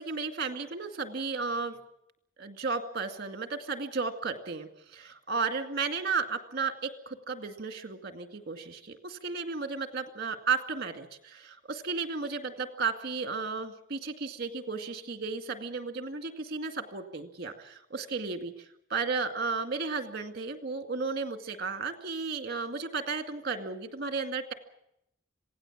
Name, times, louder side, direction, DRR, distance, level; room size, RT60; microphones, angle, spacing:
voice 1, 0.0-1.8 2.4-18.5 18.9-24.5, right 4 dB, 50° right, 6 dB, 2.2 m, -34 dB
26.5 x 17.5 x 7.4 m, 0.78 s
head